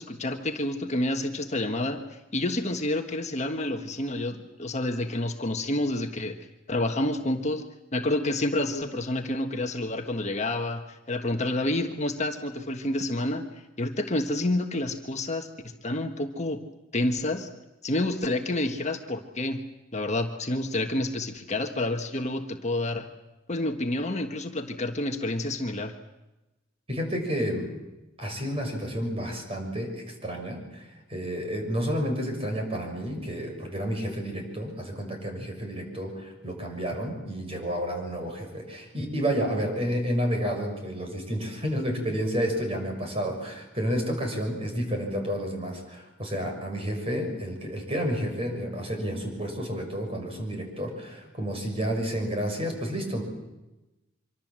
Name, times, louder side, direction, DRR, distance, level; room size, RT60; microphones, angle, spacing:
voice 1, 0.0-6.4 6.7-7.6 7.9-13.5 13.8-15.5 15.8-16.6 16.9-17.5 17.8-19.6 19.9-23.1 23.5-25.9, left 1 dB, 35° left, 5 dB, 1.5 m, -29 dB
voice 2, 26.9-27.7 28.2-53.2, equal, 30° right, 3 dB, 6.4 m, -30 dB
25.5 x 25.0 x 7.6 m, 1.0 s
head